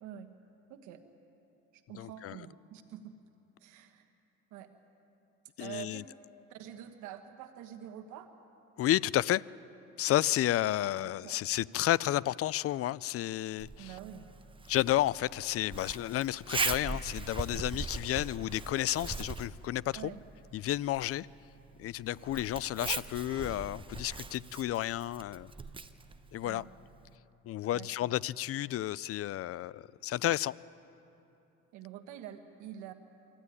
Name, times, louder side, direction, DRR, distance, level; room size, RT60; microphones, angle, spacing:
voice 1, 0.0-0.3 0.7-1.0 1.7-3.2 3.6-4.1 4.5-4.7 5.6-6.0 6.5-8.3 10.8-11.4 13.8-14.3 19.9-20.2 26.4-26.6 27.7-28.2 31.7-32.9, right 10 dB, 85° right, 1.4 m, -46 dB
voice 2, 1.9-2.4 5.6-6.0 8.8-9.4 10.0-13.9 14.7-20.1 20.5-21.3 21.8-25.5 26.3-26.6 27.5-30.5, left 14 dB, 50° left, 0.4 m, -31 dB
Zipper (clothing), 13.6-27.2, right 4 dB, 15° right, 0.8 m, -41 dB
24.5 x 14.5 x 9.7 m
cardioid pair, 110°, 29 cm